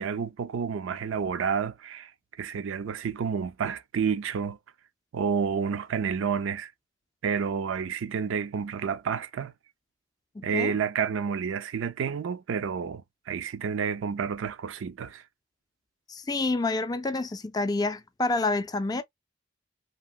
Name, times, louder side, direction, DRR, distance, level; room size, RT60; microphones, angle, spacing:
voice 1, 0.0-2.1 2.4-4.6 5.1-6.7 7.2-9.5 10.4-15.2, right 6 dB, 75° right, 0.4 m, -30 dB
voice 2, 10.4-10.7 16.1-19.0, left 2 dB, 20° left, 0.3 m, -28 dB
2.9 x 2.8 x 2.3 m
head